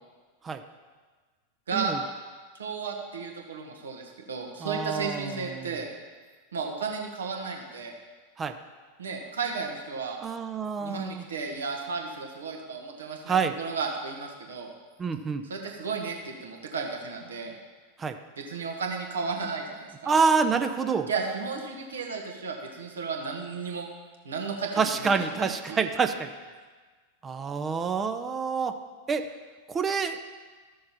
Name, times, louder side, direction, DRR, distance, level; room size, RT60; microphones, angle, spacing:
voice 1, 2.6-5.9 6.5-7.9 9.0-10.2 10.8-14.7 15.4-17.5 18.4-20.1 21.1-23.9 24.2-25.8, right 5 dB, 65° right, 2 dB, 1.4 m, -34 dB
voice 2, 4.6-5.7 8.4-8.5 10.2-11.2 13.3-13.5 15.0-15.4 18.0-18.2 20.1-21.1 24.8-26.3 27.2-28.8 29.1-29.3 29.7-30.2, right 5 dB, 20° right, 8 dB, 0.6 m, -27 dB
14.0 x 6.5 x 4.3 m, 1.4 s
figure-of-eight pair, 90°, 0 cm